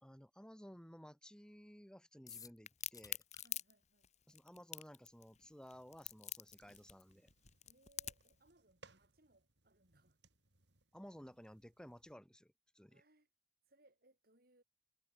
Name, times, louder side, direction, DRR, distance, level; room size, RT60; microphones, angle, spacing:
voice 1, 0.0-3.2 4.3-7.3 10.9-13.0, equal, 5° left, 2.4 m, -56 dB
sound 1, 2.3-3.5, left 7 dB, 20° left, 0.9 m, -55 dB
Crack, 2.7-8.3, left 12 dB, 40° left, 1.7 m, -45 dB
voice 2, 3.4-4.1 6.6-6.9 7.7-10.2 12.9-13.3 13.7-14.6, right 2 dB, 55° right, 5.8 m, -71 dB
sound 2, 5.7-12.2, right 3 dB, 75° right, 3.7 m, -69 dB
head